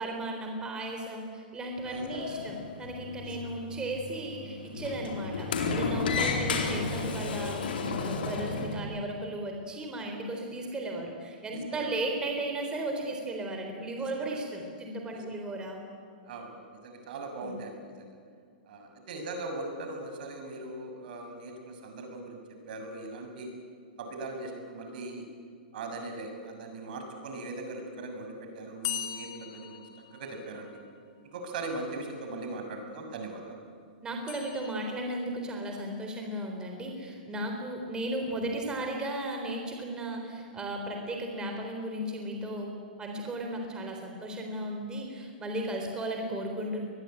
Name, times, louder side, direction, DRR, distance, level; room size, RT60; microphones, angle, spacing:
voice 1, 0.0-7.7 8.0-15.8 17.4-17.6 34.0-42.7 43.0-46.8, right 1 dB, 15° right, 2 dB, 4.0 m, -35 dB
Sliding door, 1.8-8.8, left 4 dB, 85° left, 4.1 m, -33 dB
voice 2, 14.0-14.4 15.1-15.2 16.2-17.8 18.7-22.4 22.7-23.5 24.0-25.2 25.7-29.8 30.1-30.8 31.2-33.6, right 2 dB, 65° right, 4 dB, 6.5 m, -40 dB
sound 1, 28.8-30.8 34.3-35.3, left 11 dB, 50° left, 3.0 m, -40 dB
25.0 x 21.0 x 9.2 m, 2.2 s
hypercardioid pair, 135°, 5 cm